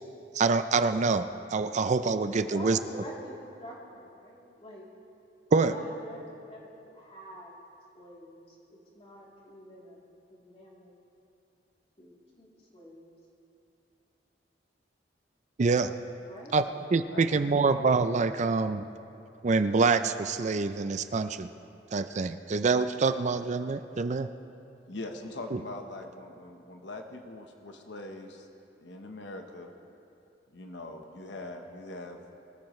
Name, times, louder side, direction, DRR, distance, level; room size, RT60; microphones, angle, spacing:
voice 1, 0.3-2.8 5.5-5.7 15.6-15.9 16.5-16.7 16.9-18.8 19.4-21.5 21.9-24.3 25.5-25.6, right 4 dB, 40° right, 10 dB, 0.4 m, -26 dB
voice 2, 2.3-4.9 5.5-7.5 7.9-10.0 10.3-10.9 12.0-13.1 16.2-16.6, equal, 35° left, -5 dB, 3.2 m, -47 dB
voice 3, 17.1-17.9 24.9-28.5 28.8-29.7 30.5-32.2, left 2 dB, 85° left, 4 dB, 1.1 m, -42 dB
23.5 x 14.0 x 3.2 m, 2.7 s
head